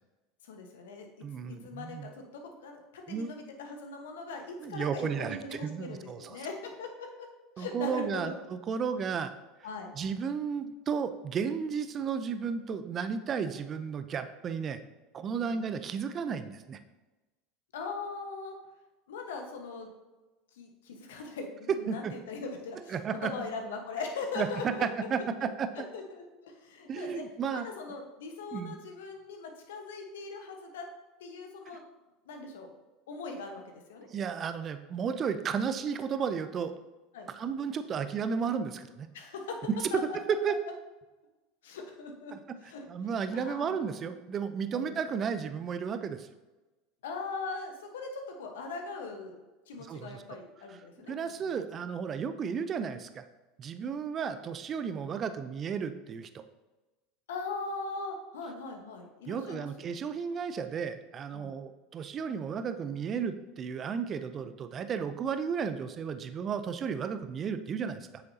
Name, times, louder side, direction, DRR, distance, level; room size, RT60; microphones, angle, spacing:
voice 1, 0.4-1.1 1.5-7.3 7.6-8.4 9.6-9.9 15.4-15.6 17.7-18.6 19.1-19.9 20.5-23.0 23.2-24.9 25.9-27.2 27.5-30.9 31.2-31.8 32.3-32.7 33.1-34.1 35.3-35.4 37.1-37.3 39.1-39.6 39.9-40.0 41.6-42.4 42.6-42.8 43.3-43.8 44.7-44.9 47.0-49.3 49.7-51.5 53.8-54.0 57.3-60.0 61.3-61.6, left 4 dB, 75° left, 3 dB, 1.2 m, -40 dB
voice 2, 1.2-2.1 3.1-3.3 4.6-6.4 7.6-9.3 9.9-14.8 15.1-16.8 21.7-22.1 22.9-23.3 24.4-25.9 26.9-27.7 28.5-28.8 34.1-36.7 37.3-39.1 39.8-39.9 40.1-40.5 42.3-42.4 42.9-46.3 49.8-50.2 50.7-50.8 51.1-53.2 53.6-56.3 59.3-68.2, right 6 dB, 35° right, 10 dB, 0.6 m, -33 dB
8.5 x 6.4 x 2.8 m, 1.1 s
hypercardioid pair, 80°, 0 cm